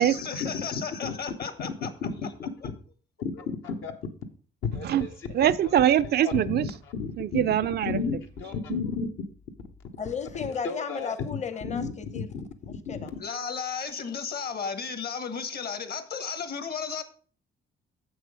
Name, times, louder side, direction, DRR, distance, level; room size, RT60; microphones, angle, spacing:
voice 1, 0.0-1.9 2.6-2.7 13.2-17.0, left 6 dB, 50° left, 1.2 m, -34 dB
voice 2, 4.7-5.1 6.2-6.7 7.0-7.4 7.8-9.1 10.6-11.1 11.7-12.2 12.9-13.0, left 5 dB, 80° left, 1.2 m, -32 dB
voice 3, 5.3-6.7 7.2-8.0 8.7-8.8, right 11 dB, 55° right, 0.4 m, -23 dB
voice 4, 10.0-12.3 12.6-13.1, left 6 dB, 35° left, 0.8 m, -34 dB
7.5 x 6.2 x 4.9 m
cardioid pair, 90°, 20 cm